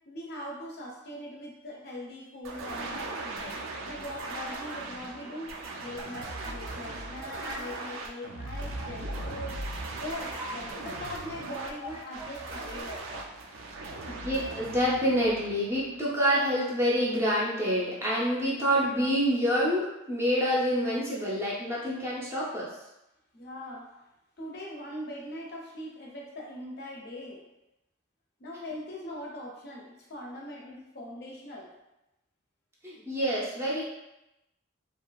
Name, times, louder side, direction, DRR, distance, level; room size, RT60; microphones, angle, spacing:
voice 1, 0.1-3.6 3.8-5.5 5.8-9.6 10.0-13.1 23.3-23.9 24.4-27.4 28.4-31.7, left 1 dB, 50° left, -2 dB, 0.5 m, -41 dB
sound 1, 2.4-16.3, right 2 dB, 75° right, 0.4 m, -39 dB
voice 2, 14.1-22.7 32.8-33.8, equal, 15° right, -7 dB, 0.5 m, -27 dB
2.7 x 2.4 x 2.2 m, 0.92 s
head